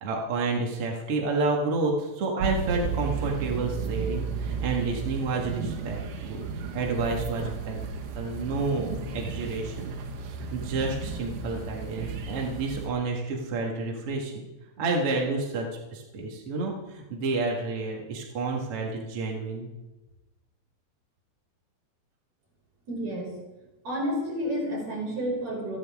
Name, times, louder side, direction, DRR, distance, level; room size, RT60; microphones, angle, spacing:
voice 1, 0.0-6.0 6.3-7.8 8.2-8.9 9.1-14.5 14.8-19.7, right 3 dB, 55° right, 0 dB, 1.6 m, -30 dB
sound 1, 2.4-12.9, right 6 dB, 85° right, 3.7 m, -33 dB
voice 2, 22.9-23.3 23.8-25.8, equal, 40° right, -3 dB, 6.7 m, -30 dB
27.5 x 10.5 x 3.6 m, 1.1 s
omnidirectional pair, 5.0 m